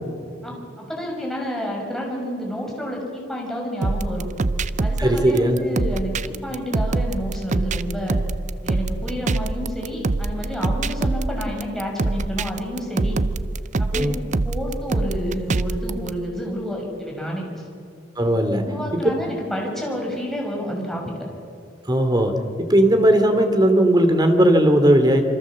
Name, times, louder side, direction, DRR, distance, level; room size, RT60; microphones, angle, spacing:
voice 1, 0.4-4.3 4.8-8.2 8.6-13.2 13.8-14.1 14.4-17.7 18.5-21.1, equal, ahead, -1 dB, 6.3 m, -29 dB
sound 1, 3.8-16.1, right 2 dB, 40° right, 0.6 m, -24 dB
voice 2, 5.0-5.6 13.9-14.2 18.2-18.6 18.9-19.0 21.9-25.2, right 1 dB, 25° right, 7 dB, 2.6 m, -17 dB
27.5 x 24.5 x 7.4 m, 2.4 s
head